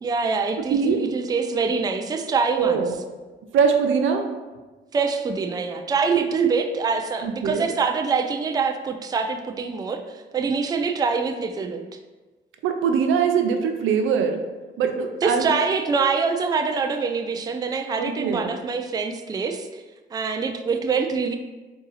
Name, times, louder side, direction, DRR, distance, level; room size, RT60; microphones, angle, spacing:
voice 1, 0.0-2.8 4.9-11.8 15.2-19.8 20.1-21.4, right 5 dB, 20° right, 6 dB, 0.3 m, -25 dB
voice 2, 0.6-1.0 2.6-2.9 3.5-4.3 7.2-7.7 12.6-14.4 14.8-15.5 18.0-18.5, right 6 dB, 80° right, 5 dB, 0.5 m, -22 dB
3.6 x 2.7 x 4.0 m, 1.2 s
cardioid pair, 90°, 20 cm